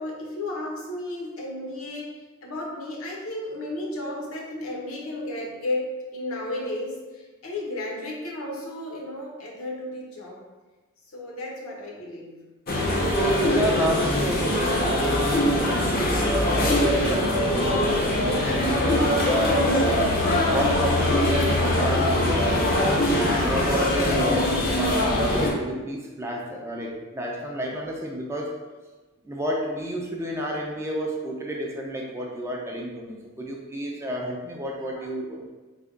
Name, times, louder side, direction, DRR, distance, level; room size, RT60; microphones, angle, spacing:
voice 1, 0.0-2.1 2.4-10.4 11.1-12.4 13.1-13.4 34.7-35.1, left 1 dB, 80° left, -2 dB, 0.8 m, -33 dB
sound 1, 12.7-25.5, left 1 dB, 45° left, 0.5 m, -22 dB
voice 2, 13.0-28.5 29.2-35.5, equal, 10° right, -2 dB, 0.3 m, -30 dB
3.3 x 2.2 x 3.7 m, 1.2 s
head